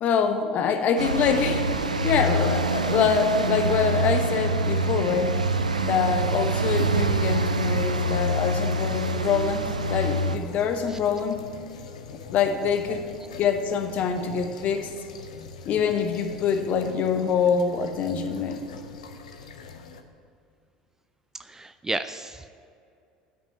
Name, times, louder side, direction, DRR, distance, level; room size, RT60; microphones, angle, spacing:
voice 1, 0.0-5.3 5.8-11.4 12.3-13.0 13.4-14.9 15.7-18.6, left 6 dB, 45° left, 6 dB, 1.0 m, -25 dB
sound 1, 1.0-10.4, right 2 dB, 85° right, 0.4 m, -25 dB
sound 2, 8.0-20.0, left 5 dB, 70° left, 0.7 m, -43 dB
voice 2, 21.5-22.5, right 2 dB, 15° right, 11 dB, 0.3 m, -33 dB
10.0 x 5.4 x 8.4 m, 2.4 s
figure-of-eight pair, 65°, 4 cm